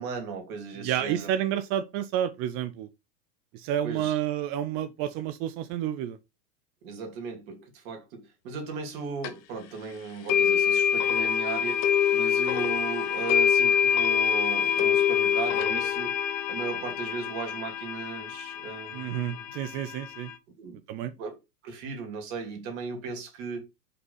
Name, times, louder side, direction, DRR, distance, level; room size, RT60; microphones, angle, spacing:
voice 1, 0.0-1.3 3.8-4.2 6.8-11.8 12.1-16.1 16.5-19.5 20.6-20.8 21.2-21.4 21.6-23.6, right 5 dB, 55° right, 2.9 m, -36 dB
voice 2, 0.8-2.9 3.5-6.2 18.9-20.3 20.9-21.1, right 11 dB, 30° right, 0.5 m, -30 dB
sound 1, 9.2-9.3 10.3-20.4, left 8 dB, 45° left, 1.2 m, -26 dB
5.5 x 3.9 x 5.5 m
hypercardioid pair, 120°, 48 cm